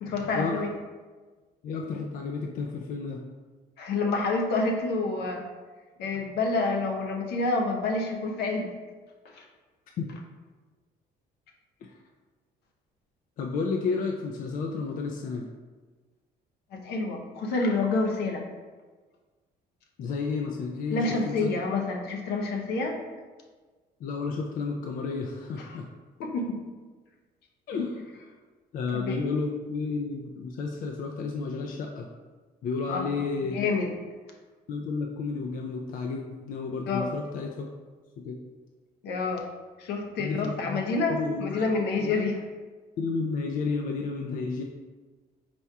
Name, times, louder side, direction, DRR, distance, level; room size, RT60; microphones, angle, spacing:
voice 1, 0.0-0.7 3.8-5.4 6.0-8.7 9.3-9.4 16.7-18.4 20.9-23.0 25.6-25.7 26.2-26.6 28.9-29.2 32.9-33.1 33.5-33.9 36.9-37.1 39.0-39.4 39.8-42.4, left 3 dB, 75° left, 2 dB, 0.7 m, -28 dB
voice 2, 1.6-3.2 10.0-10.1 11.8-11.9 13.4-15.5 20.0-21.5 24.0-25.9 27.7-28.3 28.7-32.1 32.6-33.6 34.7-37.7 38.2-38.4 40.2-40.8 41.1-41.6 42.0-42.2 43.0-44.6, left 4 dB, 55° left, 1 dB, 0.4 m, -31 dB
4.2 x 2.3 x 4.5 m, 1.3 s
cardioid pair, 110°, 17 cm